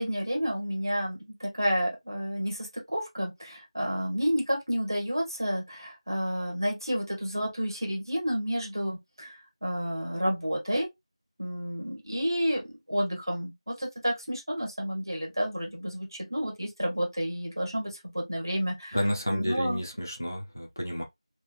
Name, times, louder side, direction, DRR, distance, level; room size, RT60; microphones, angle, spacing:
voice 1, 0.0-10.9 11.4-19.0 19.3-19.8, equal, 40° right, 1.2 m, -30 dB
voice 2, 18.9-21.0, equal, 30° left, 0.5 m, -30 dB
3.1 x 2.3 x 3.1 m
figure-of-eight pair, 180°, 3 cm